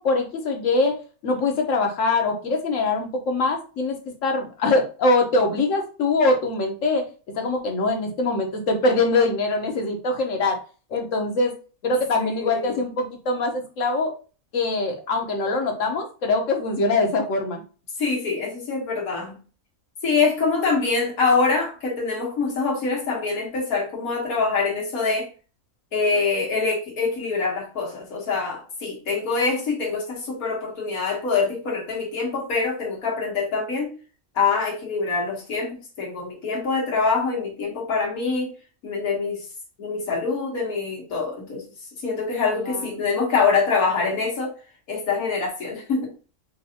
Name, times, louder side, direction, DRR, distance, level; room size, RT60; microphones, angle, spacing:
voice 1, 0.0-7.0 7.3-10.6 10.9-11.6 11.8-14.1 14.5-17.6 42.5-43.0, left 3 dB, 65° left, 3 dB, 1.3 m, -23 dB
voice 2, 12.2-12.8 18.0-19.4 20.0-25.3 25.9-33.9 34.4-38.5 38.8-39.4 39.8-41.6 42.0-44.5 44.9-46.1, left 4 dB, 85° left, -3 dB, 1.8 m, -24 dB
5.4 x 2.6 x 2.8 m, 0.36 s
omnidirectional pair, 1.5 m